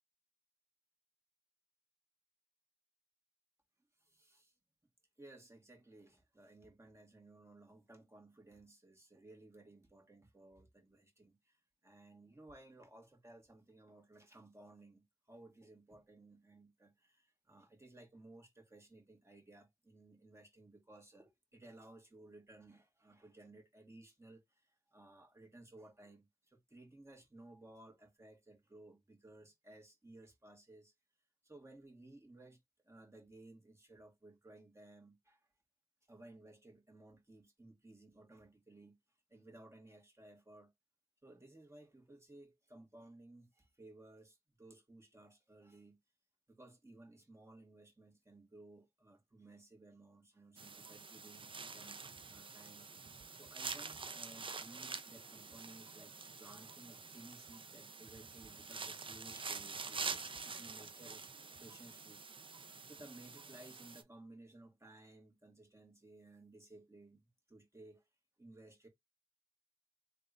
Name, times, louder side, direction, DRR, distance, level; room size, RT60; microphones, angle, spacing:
voice 1, 4.0-4.5 5.2-30.9 31.4-35.4 36.1-39.0 39.3-40.7 41.2-46.0 46.5-52.9 53.4-61.3 61.6-68.1 68.4-68.9, right 2 dB, 25° right, 1.7 m, -59 dB
sound 1, 50.6-64.0, right 4 dB, 50° right, 0.5 m, -47 dB
3.4 x 2.5 x 3.3 m
cardioid pair, 40°, 11 cm